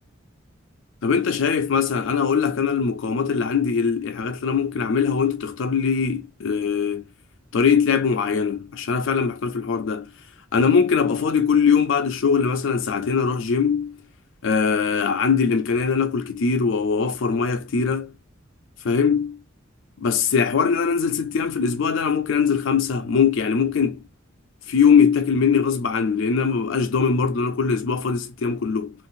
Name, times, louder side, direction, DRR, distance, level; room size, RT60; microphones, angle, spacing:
voice 1, 1.0-7.0 7.5-10.1 10.5-14.0 14.4-18.1 18.8-19.4 20.0-24.0 24.7-28.9, left 6 dB, 65° left, 0.4 m, -21 dB
2.6 x 2.4 x 3.5 m
head